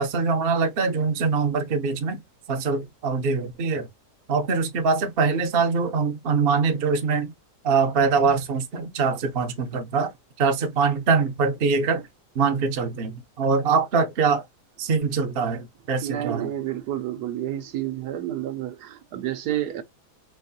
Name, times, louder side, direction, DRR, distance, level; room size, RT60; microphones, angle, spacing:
voice 1, 0.0-2.2 2.5-3.9 4.3-7.3 7.6-10.1 10.4-12.1 12.3-14.4 14.8-16.5, right 5 dB, 50° right, 0.7 m, -23 dB
voice 2, 16.0-19.8, right 12 dB, 75° right, 1.1 m, -30 dB
4.7 x 2.5 x 2.6 m
omnidirectional pair, 1.8 m